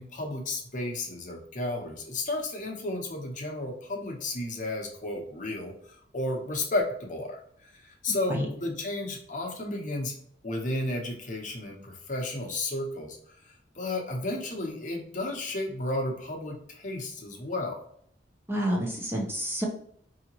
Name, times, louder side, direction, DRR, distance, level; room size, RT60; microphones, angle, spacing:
voice 1, 0.0-10.1 10.4-17.8, left 2 dB, 45° left, 1 dB, 0.9 m, -33 dB
voice 2, 18.5-19.7, equal, 15° right, -1 dB, 0.7 m, -29 dB
4.9 x 2.8 x 2.9 m, 0.64 s
head